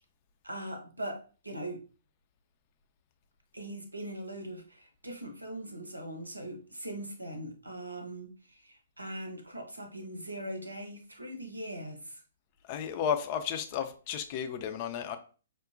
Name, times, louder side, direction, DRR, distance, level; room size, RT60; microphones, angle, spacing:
voice 1, 0.4-1.8 3.5-12.2, right 1 dB, 85° right, 5 dB, 0.7 m, -41 dB
voice 2, 12.7-15.2, left 8 dB, 35° left, 8 dB, 0.4 m, -33 dB
4.8 x 2.1 x 2.5 m, 0.37 s
figure-of-eight pair, 120°, 0 cm